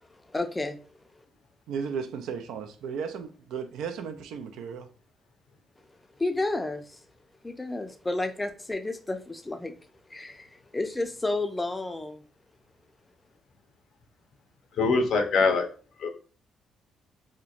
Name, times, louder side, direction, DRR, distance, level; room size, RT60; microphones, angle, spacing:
voice 1, 0.0-0.8 6.2-7.0 7.4-9.7 10.1-12.2, left 2 dB, 15° left, 0.4 m, -31 dB
voice 2, 1.7-4.9, right 6 dB, 85° right, 0.3 m, -35 dB
voice 3, 14.8-15.7 16.0-16.1, left 4 dB, 70° left, 0.6 m, -23 dB
2.8 x 2.1 x 2.4 m
cardioid pair, 90°, 0 cm